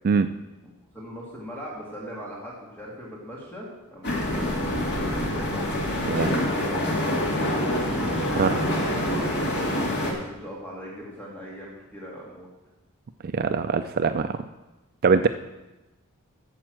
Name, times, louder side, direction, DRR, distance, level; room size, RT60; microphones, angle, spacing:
voice 1, 0.9-4.5 4.9-5.6 6.1-6.9 8.2-12.5, equal, 10° left, -4 dB, 1.9 m, -40 dB
sound 1, 4.0-10.1, left 1 dB, 50° left, 2.5 m, -26 dB
voice 2, 6.1-6.4 8.4-8.6 13.3-14.4 15.0-15.3, right 5 dB, 45° right, 9 dB, 0.4 m, -22 dB
9.3 x 7.2 x 7.6 m, 1.0 s
head